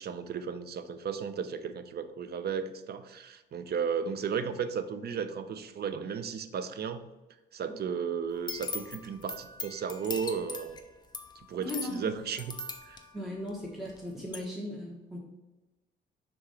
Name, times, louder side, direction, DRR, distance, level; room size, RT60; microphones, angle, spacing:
voice 1, 0.0-7.1 7.5-10.8 11.5-12.6 12.9-13.0, right 6 dB, 55° right, 11 dB, 0.6 m, -34 dB
sound 1, 8.3-14.0 14.3-14.4, left 3 dB, 20° left, 0.8 m, -41 dB
voice 2, 11.6-12.1 13.1-15.2, left 1 dB, ahead, -4 dB, 1.2 m, -37 dB
4.8 x 3.7 x 5.7 m, 1.1 s
cardioid pair, 90°, 20 cm